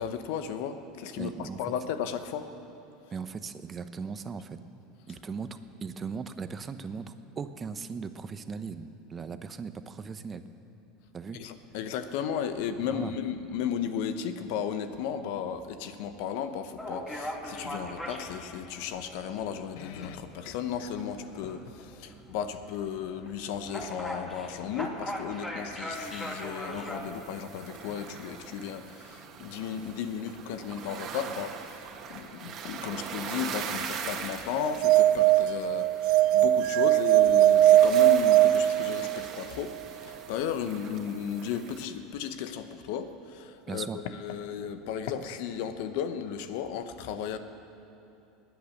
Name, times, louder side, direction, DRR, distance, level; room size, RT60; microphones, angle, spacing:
voice 1, 0.0-2.5 11.3-39.8 40.0-47.4, left 8 dB, 70° left, 10 dB, 1.0 m, -35 dB
voice 2, 1.2-1.7 3.1-4.6 5.1-10.4 11.1-11.4 12.9-13.2 43.7-44.0, right 5 dB, 30° right, 10 dB, 0.8 m, -38 dB
sound 1, 16.8-27.0, equal, 10° left, 2.6 m, -40 dB
sound 2, 25.9-41.9, right 6 dB, 45° right, 1.7 m, -42 dB
sound 3, 34.6-39.4, right 13 dB, 65° right, 0.4 m, -21 dB
19.5 x 9.4 x 6.6 m, 2.9 s
hypercardioid pair, 95°, 0 cm